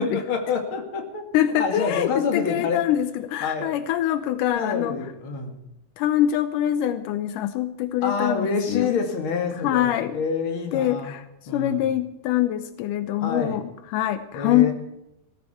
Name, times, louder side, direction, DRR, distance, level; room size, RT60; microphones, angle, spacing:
voice 1, 0.0-1.2 1.5-2.8 3.4-3.8 4.5-5.6 8.0-11.1 11.5-11.9 13.2-13.6 14.3-14.7, left 5 dB, 45° left, 3 dB, 2.7 m, -27 dB
voice 2, 1.3-5.0 6.0-8.9 9.6-10.2 10.7-11.2 11.5-13.6 13.9-14.7, left 12 dB, 85° left, 11 dB, 2.3 m, -24 dB
19.5 x 14.0 x 4.4 m, 0.88 s
omnidirectional pair, 3.7 m